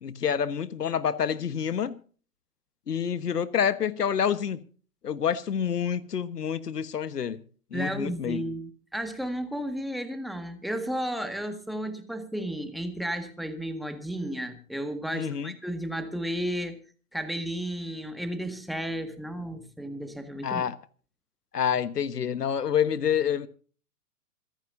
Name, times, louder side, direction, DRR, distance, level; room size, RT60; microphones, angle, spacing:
voice 1, 0.0-2.0 2.9-4.6 5.0-7.4 7.7-8.4 15.1-15.5 20.4-20.7 21.5-23.5, left 8 dB, 85° left, 1.4 m, -27 dB
voice 2, 7.7-16.8 17.1-20.6, right 1 dB, ahead, 1.7 m, -33 dB
26.5 x 10.5 x 2.7 m
hypercardioid pair, 130°, 46 cm